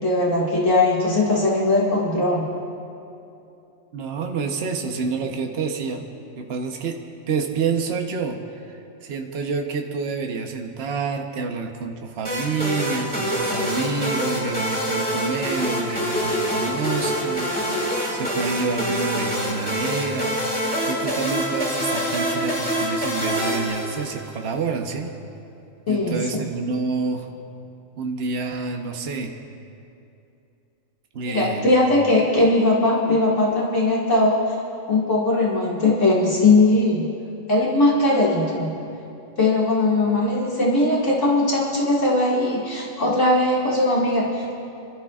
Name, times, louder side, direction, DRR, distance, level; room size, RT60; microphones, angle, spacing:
voice 1, 0.0-2.4 25.9-26.2 31.3-34.4 34.9-37.0 37.5-38.7 39.4-44.6, left 2 dB, 65° left, -6 dB, 2.4 m, -19 dB
voice 2, 3.9-6.0 6.3-7.0 7.3-8.4 8.7-17.5 18.1-20.4 20.9-25.1 25.9-27.3 28.0-29.3 31.1-31.7, right 4 dB, 50° right, 3 dB, 1.1 m, -28 dB
sound 1, 12.2-24.4, equal, 5° left, 2.4 m, -25 dB
29.0 x 13.0 x 2.4 m, 2.7 s
omnidirectional pair, 1.4 m